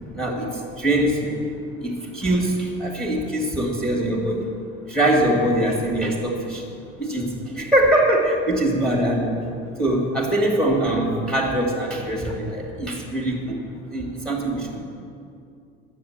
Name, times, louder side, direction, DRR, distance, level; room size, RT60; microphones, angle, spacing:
voice 1, 0.1-1.4 1.8-4.5 4.9-6.6 7.0-9.4 9.8-13.6 13.9-14.8, right 1 dB, 5° left, 0 dB, 2.1 m, -22 dB
10.0 x 7.6 x 7.3 m, 2.4 s
supercardioid pair, 95°, 29 cm